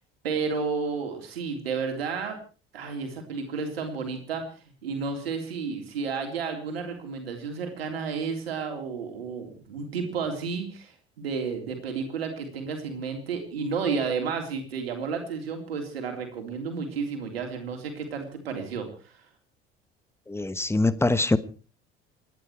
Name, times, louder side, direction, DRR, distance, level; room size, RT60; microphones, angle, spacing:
voice 1, 0.2-2.4 2.7-19.1, right 5 dB, 75° right, 3.6 m, -32 dB
voice 2, 20.3-21.4, left 2 dB, 10° left, 1.1 m, -23 dB
28.5 x 10.5 x 4.7 m
figure-of-eight pair, 60°, 31 cm